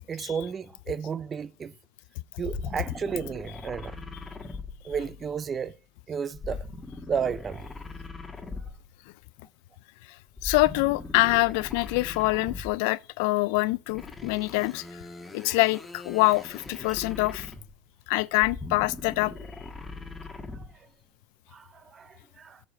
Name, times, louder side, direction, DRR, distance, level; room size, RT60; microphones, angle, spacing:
voice 1, 0.1-1.7 2.4-4.0 4.8-5.7 6.1-6.6 7.1-7.6 21.5-22.6, right 6 dB, 30° right, 0.4 m, -32 dB
sound 1, 2.4-5.4 6.3-9.0 10.3-12.9 13.9-17.9 18.3-20.8, left 3 dB, 15° left, 1.4 m, -40 dB
voice 2, 10.4-14.8 15.3-17.5 18.1-19.3, left 22 dB, 70° left, 0.3 m, -25 dB
9.1 x 5.0 x 5.5 m
supercardioid pair, 105°, 0 cm